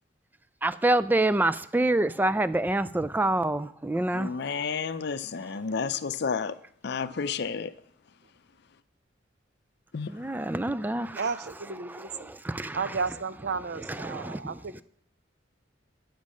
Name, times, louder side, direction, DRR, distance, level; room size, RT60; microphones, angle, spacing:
voice 1, 0.6-4.3 10.1-11.3 11.8-13.0 13.7-14.8, right 2 dB, 10° right, 0.3 m, -27 dB
voice 2, 4.1-6.5 6.8-7.7 9.9-10.1, left 5 dB, 60° left, 0.6 m, -31 dB
voice 3, 11.2-12.3 12.7-14.8, right 5 dB, 60° right, 0.6 m, -33 dB
9.3 x 7.3 x 6.3 m
head